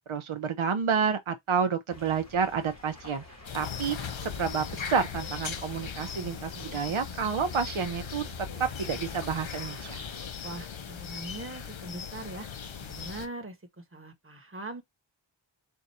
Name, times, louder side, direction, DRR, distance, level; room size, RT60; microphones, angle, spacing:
voice 1, 0.1-3.2 3.5-4.0 4.2-8.2 8.6-10.0, right 6 dB, 85° right, 0.7 m, -29 dB
sound 1, 1.9-10.3, left 2 dB, 35° left, 1.6 m, -47 dB
sound 2, 3.4-13.3, left 7 dB, 75° left, 0.7 m, -39 dB
voice 2, 10.4-12.5 12.8-14.8, right 2 dB, 25° right, 1.1 m, -41 dB
4.5 x 2.5 x 4.1 m
wide cardioid pair, 55°, 47 cm